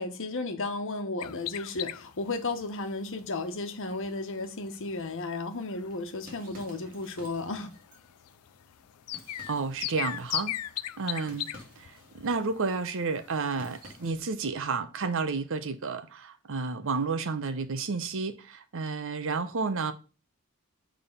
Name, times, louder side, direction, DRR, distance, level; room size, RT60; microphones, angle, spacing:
voice 1, 0.0-7.7, left 3 dB, 60° left, 1.2 m, -34 dB
sound 1, 1.2-14.1, left 14 dB, 85° left, 0.4 m, -40 dB
sound 2, 5.8-14.4, equal, 40° right, 2.3 m, -54 dB
voice 2, 9.5-10.6 11.0-11.5 11.8-11.9 12.1-19.9, right 4 dB, 65° right, 0.8 m, -31 dB
7.0 x 3.7 x 5.5 m
head